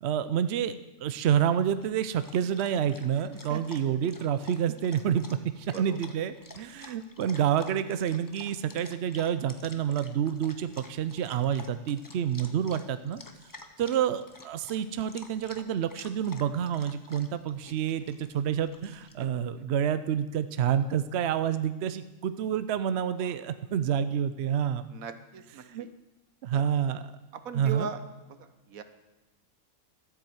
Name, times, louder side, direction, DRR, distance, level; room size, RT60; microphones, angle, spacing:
voice 1, 0.0-0.7 1.0-5.3 5.6-13.2 13.8-24.9 25.6-25.9 26.4-27.1 27.5-27.9, right 9 dB, 60° right, 12 dB, 0.8 m, -28 dB
Dog, 1.7-19.1, left 2 dB, 20° left, 0.7 m, -50 dB
voice 2, 24.9-25.9 26.5-26.6 27.4-28.0 28.7-28.8, right 6 dB, 85° right, 10 dB, 1.4 m, -38 dB
13.0 x 8.6 x 7.8 m, 1.1 s
omnidirectional pair, 1.4 m